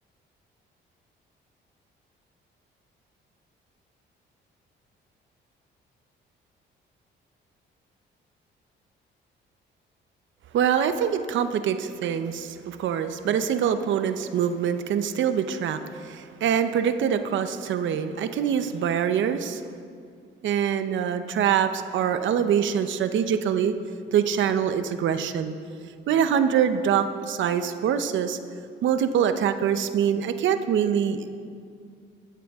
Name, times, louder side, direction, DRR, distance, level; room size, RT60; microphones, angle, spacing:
voice 1, 10.5-19.6 20.4-23.7 24.1-25.5 26.1-28.4 28.8-31.3, right 8 dB, 70° right, 10 dB, 0.8 m, -24 dB
15.0 x 13.5 x 3.6 m, 2.2 s
cardioid pair, 90°, 20 cm